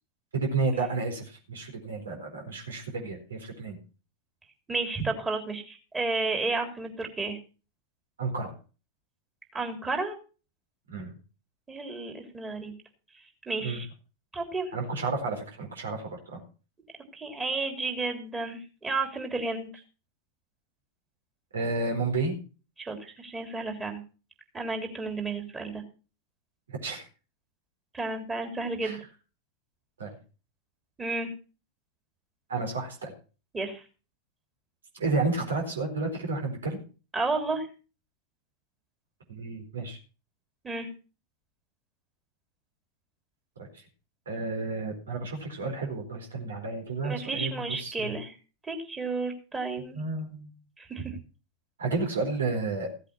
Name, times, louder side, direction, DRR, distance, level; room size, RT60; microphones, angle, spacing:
voice 1, 0.3-3.8 8.2-8.5 10.9-11.1 13.6-13.8 14.7-16.4 21.5-22.3 26.7-27.0 28.8-29.0 30.0-30.2 32.5-33.1 34.9-36.8 39.3-40.0 43.6-43.8 44.3-48.1 49.9-50.6 51.8-52.9, right 3 dB, 70° right, 3 dB, 4.3 m, -31 dB
voice 2, 4.7-7.4 9.5-10.2 11.7-12.7 13.5-13.9 14.3-14.7 17.1-19.7 22.8-24.0 24.5-25.8 27.9-29.0 31.0-31.3 33.5-33.8 37.1-37.7 40.6-40.9 47.0-48.4 48.6-50.0 50.8-51.2, right 3 dB, 15° right, 3 dB, 3.4 m, -32 dB
16.0 x 8.3 x 5.9 m, 0.36 s
figure-of-eight pair, 90°, 0 cm